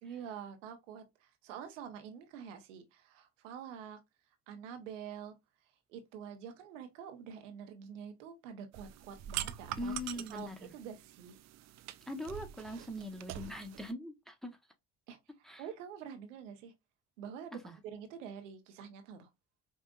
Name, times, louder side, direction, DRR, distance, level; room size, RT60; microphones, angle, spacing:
voice 1, 0.0-4.0 4.5-5.4 5.9-11.4 15.1-15.2 15.6-16.7 17.2-19.3, right 8 dB, 80° right, 0.8 m, -47 dB
sound 1, 8.7-13.9, right 12 dB, 45° right, 0.4 m, -44 dB
voice 2, 9.8-10.7 12.1-14.6 15.4-15.6 17.5-17.8, left 1 dB, ahead, 0.9 m, -41 dB
5.3 x 2.4 x 2.3 m
hypercardioid pair, 60°, 37 cm